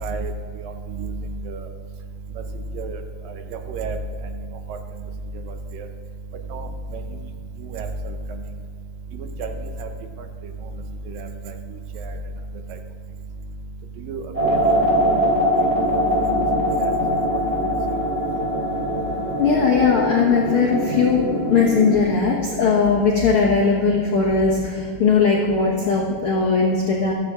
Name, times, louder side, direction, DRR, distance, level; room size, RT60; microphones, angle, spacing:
voice 1, 0.0-0.3 0.6-1.1 1.5-1.6 2.8-3.0 3.7-4.0 5.7-5.9 6.5-6.7 7.7-7.9 9.4-9.5 9.8-9.9 11.1-11.3 14.1-14.7 15.0-15.1 15.6-15.7 16.8-16.9, right 5 dB, 75° right, 6 dB, 2.4 m, -30 dB
sound 1, 14.3-22.0, equal, 20° right, 3.0 m, -22 dB
voice 2, 19.4-27.1, left 5 dB, 70° left, -3 dB, 1.3 m, -19 dB
15.5 x 12.0 x 3.6 m, 2.2 s
omnidirectional pair, 4.3 m